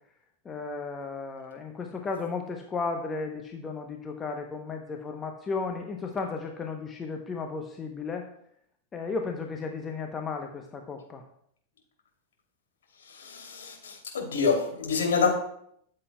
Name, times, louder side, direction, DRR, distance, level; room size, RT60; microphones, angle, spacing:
voice 1, 0.4-8.3 8.9-11.2, left 4 dB, 20° left, 4 dB, 0.8 m, -34 dB
voice 2, 13.1-15.3, left 5 dB, 65° left, 0 dB, 2.9 m, -27 dB
13.5 x 7.6 x 2.3 m, 0.69 s
figure-of-eight pair, 90°, 0 cm